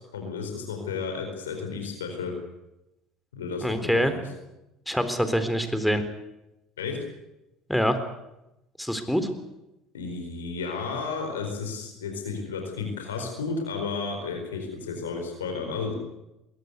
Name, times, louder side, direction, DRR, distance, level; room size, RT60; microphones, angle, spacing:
voice 1, 0.1-2.3 3.3-4.2 6.8-7.0 9.9-15.9, left 4 dB, 90° left, 4 dB, 4.5 m, -32 dB
voice 2, 3.6-4.1 4.9-6.0 7.7-8.0 8.8-9.3, equal, ahead, 10 dB, 3.8 m, -25 dB
21.5 x 18.0 x 8.3 m, 0.91 s
hypercardioid pair, 70°, 0 cm